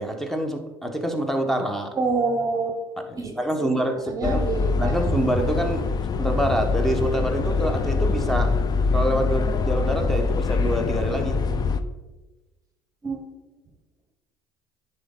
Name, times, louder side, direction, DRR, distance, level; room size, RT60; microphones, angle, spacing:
voice 1, 0.0-1.9 3.1-4.4 4.8-5.9 6.2-8.5 8.9-11.4, right 1 dB, 5° left, 5 dB, 1.2 m, -26 dB
voice 2, 2.0-2.7 3.1-3.3 3.6-3.7 4.1-5.0 13.0-13.3, right 4 dB, 30° right, 4 dB, 1.0 m, -26 dB
sound 1, 4.2-11.8, left 4 dB, 35° left, 0.6 m, -24 dB
9.9 x 4.1 x 3.9 m, 1.1 s
hypercardioid pair, 70°, 12 cm